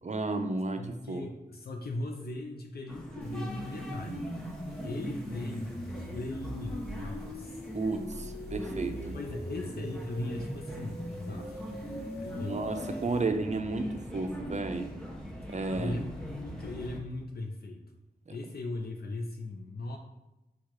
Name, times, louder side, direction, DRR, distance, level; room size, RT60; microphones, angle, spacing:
voice 1, 0.0-0.8 1.1-1.2 7.7-9.2 11.3-11.5 12.4-14.9 15.5-16.0, right 3 dB, 45° right, 7 dB, 0.5 m, -32 dB
voice 2, 0.8-4.3 4.8-5.7 6.1-7.6 9.1-11.6 12.2-12.7 15.7-17.8 18.3-20.0, left 2 dB, 70° left, 2 dB, 0.5 m, -39 dB
sound 1, 2.9-17.0, equal, 5° left, 0.8 m, -42 dB
sound 2, 3.2-13.2, equal, 90° left, 1.0 m, -41 dB
4.3 x 2.4 x 4.6 m, 1.0 s
wide cardioid pair, 55°, 17 cm